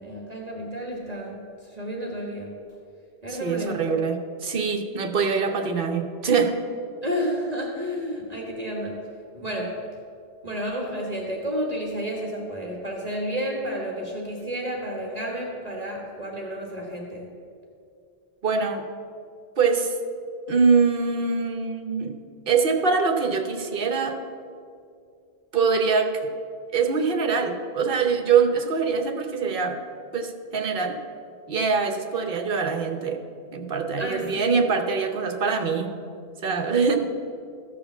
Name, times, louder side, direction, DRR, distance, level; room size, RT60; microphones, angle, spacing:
voice 1, 0.0-2.5 3.2-4.0 7.0-9.0 9.3-9.8 10.4-17.3 34.0-34.7, equal, 40° right, -1 dB, 1.5 m, -31 dB
voice 2, 3.3-4.2 4.4-6.6 18.4-18.8 19.6-19.9 20.5-22.1 22.5-24.2 25.5-26.2 26.7-29.8 30.1-31.0 31.5-33.2 33.5-35.9 36.4-37.0, right 5 dB, 60° right, 5 dB, 1.1 m, -23 dB
14.5 x 5.0 x 7.1 m, 2.4 s
omnidirectional pair, 1.1 m